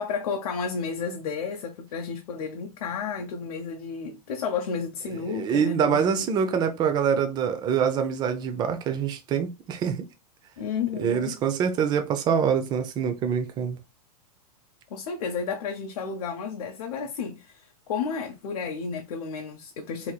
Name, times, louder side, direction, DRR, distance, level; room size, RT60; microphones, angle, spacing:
voice 1, 0.0-6.3 10.6-11.3 14.9-20.1, left 5 dB, 75° left, 0.6 m, -32 dB
voice 2, 5.1-10.0 11.0-13.8, right 7 dB, 20° right, 0.5 m, -25 dB
3.0 x 2.8 x 2.2 m
hypercardioid pair, 140°, 20 cm